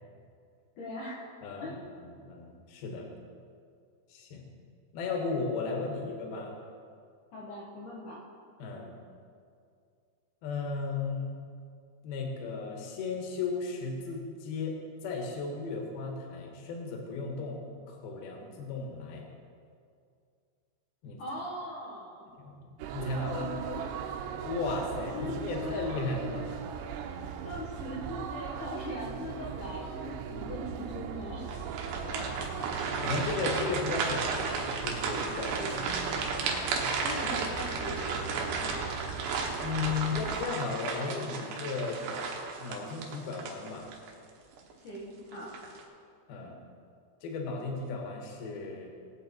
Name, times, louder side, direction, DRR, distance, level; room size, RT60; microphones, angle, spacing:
voice 1, 0.8-1.2 1.6-1.9 7.3-8.2 21.2-22.3 22.9-24.0 25.1-26.1 27.4-31.5 32.6-32.7 35.6-35.9 37.0-38.9 44.8-45.5, left 1 dB, 75° left, -5 dB, 1.8 m, -40 dB
voice 2, 1.4-1.8 2.0-3.1 4.1-4.5 4.9-6.5 8.6-8.9 10.4-11.3 12.0-14.8 15.0-17.6 17.9-19.3 21.0-21.2 22.4-23.5 24.4-26.6 31.9-32.5 33.0-35.7 36.2-37.0 39.6-42.0 42.6-43.9 46.3-46.6 47.2-48.9, left 4 dB, 60° left, 1 dB, 2.9 m, -35 dB
sound 1, 22.8-40.4, right 7 dB, 85° right, 3.3 m, -39 dB
sound 2, 31.4-44.1 44.6-44.7 45.3-45.8, right 4 dB, 70° right, 3.0 m, -34 dB
19.0 x 8.1 x 4.4 m, 2.3 s
omnidirectional pair, 5.9 m